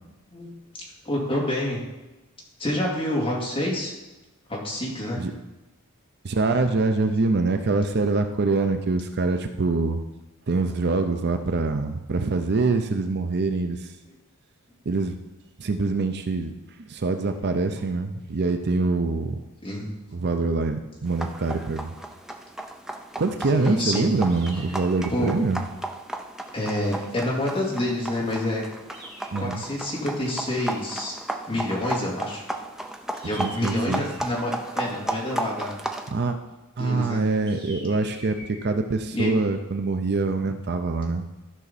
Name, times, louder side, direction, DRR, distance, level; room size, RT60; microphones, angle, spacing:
voice 1, 1.0-1.8 2.6-3.9 4.5-5.2 19.6-19.9 23.5-24.0 25.1-25.3 26.5-28.6 29.4-31.2 31.5-32.4 33.2-35.7 36.8-37.2 39.1-39.3, left 1 dB, 25° left, -4 dB, 2.4 m, -27 dB
voice 2, 6.2-10.0 10.5-13.9 14.9-15.2 15.6-16.5 16.9-19.4 20.1-21.9 23.2-25.6 29.3-29.6 33.4-34.0 36.1-36.4 36.8-41.3, right 3 dB, 50° right, 7 dB, 0.6 m, -24 dB
sound 1, 21.1-36.1, right 1 dB, ahead, 0.5 m, -35 dB
sound 2, 24.3-25.4 28.9-29.9 33.1-34.4 37.5-38.7, right 1 dB, 25° right, 3.6 m, -45 dB
14.0 x 5.7 x 4.1 m, 1.0 s
head